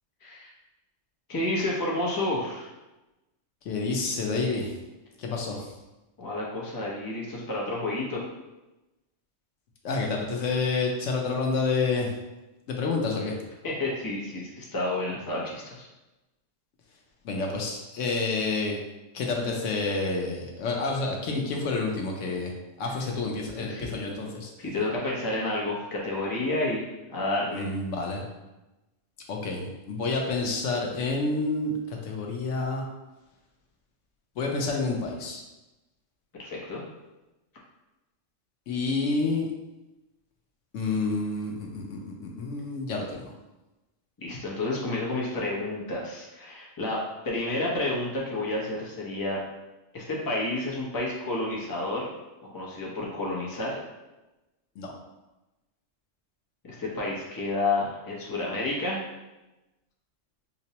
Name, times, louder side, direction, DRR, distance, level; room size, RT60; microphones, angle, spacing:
voice 1, 1.3-2.7 6.2-8.2 13.6-15.9 23.6-23.9 24.6-27.7 36.4-36.8 44.2-47.0 47.2-49.4 49.9-52.1 52.5-53.8 56.7-59.0, left 2 dB, 25° left, -4 dB, 0.6 m, -30 dB
voice 2, 3.6-4.7 5.2-5.7 9.8-12.1 12.7-13.4 17.2-18.8 19.1-22.5 22.8-24.5 27.5-28.2 29.3-32.8 34.4-35.4 38.7-39.5 40.7-43.3 54.8-54.9, left 3 dB, 80° left, 0 dB, 1.0 m, -29 dB
5.1 x 2.0 x 2.8 m, 1.0 s
omnidirectional pair, 1.3 m